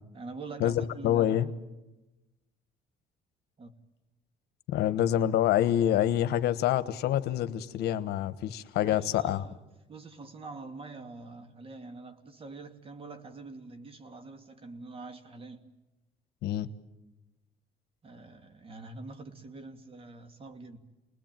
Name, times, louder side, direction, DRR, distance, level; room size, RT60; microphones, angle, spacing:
voice 1, 0.1-1.5 3.6-3.7 8.8-9.6 9.9-15.6 18.0-20.8, right 3 dB, 35° right, 8 dB, 2.5 m, -45 dB
voice 2, 1.0-1.5 4.7-9.4 16.4-16.7, left 11 dB, 75° left, 12 dB, 1.3 m, -26 dB
29.0 x 20.5 x 9.1 m, 1.0 s
cardioid pair, 110°, 17 cm